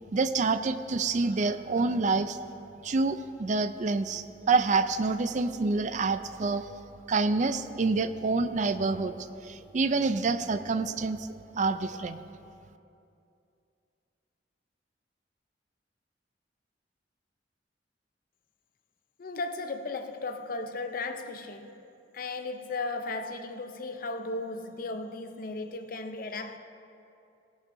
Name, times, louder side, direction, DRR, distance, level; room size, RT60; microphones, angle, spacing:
voice 1, 0.1-2.4 2.8-6.8 7.1-12.2, right 3 dB, 45° right, 0.4 m, -27 dB
voice 2, 19.2-21.7 22.1-26.6, left 3 dB, 55° left, 0.6 m, -35 dB
18.0 x 11.5 x 2.7 m
head